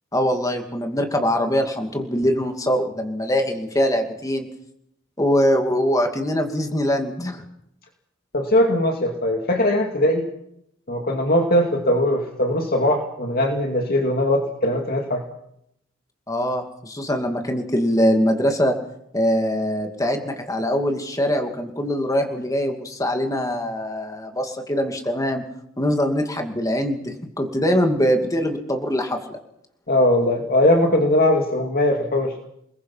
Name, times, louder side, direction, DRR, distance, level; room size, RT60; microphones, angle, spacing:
voice 1, 0.1-4.5 5.2-7.5 16.3-18.7 19.1-25.4 25.8-29.4, equal, 15° left, 4 dB, 2.5 m, -22 dB
voice 2, 8.3-10.2 10.9-15.2 29.9-32.3, left 1 dB, 50° left, 2 dB, 2.5 m, -20 dB
29.0 x 20.5 x 5.7 m, 0.76 s
head